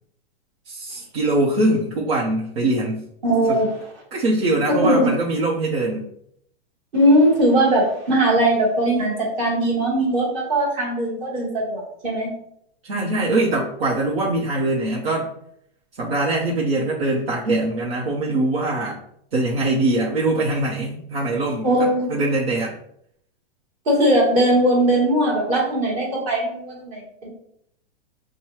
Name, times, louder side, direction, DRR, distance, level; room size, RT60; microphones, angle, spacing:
voice 1, 0.7-3.1 3.5-3.6 4.1-6.1 12.8-15.3 16.0-19.0 19.3-22.7, right 2 dB, 70° right, -3 dB, 0.9 m, -22 dB
voice 2, 3.2-3.7 4.8-5.1 6.9-12.3 21.6-22.1 23.8-27.3, right 1 dB, 25° right, -4 dB, 1.3 m, -19 dB
5.9 x 2.3 x 3.1 m, 0.72 s
supercardioid pair, 175°, 31 cm